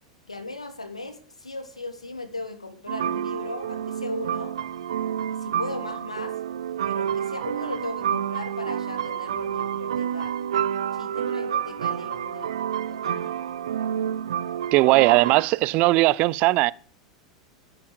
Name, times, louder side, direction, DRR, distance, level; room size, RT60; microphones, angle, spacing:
voice 1, 0.3-4.5 5.3-6.3 6.9-10.3 10.9-13.4, left 2 dB, 85° left, 3.1 m, -37 dB
sound 1, 2.9-15.4, right 9 dB, 65° right, 0.9 m, -29 dB
voice 2, 14.7-16.7, right 20 dB, 45° right, 0.7 m, -19 dB
15.5 x 11.5 x 8.2 m
figure-of-eight pair, 85°, 3 cm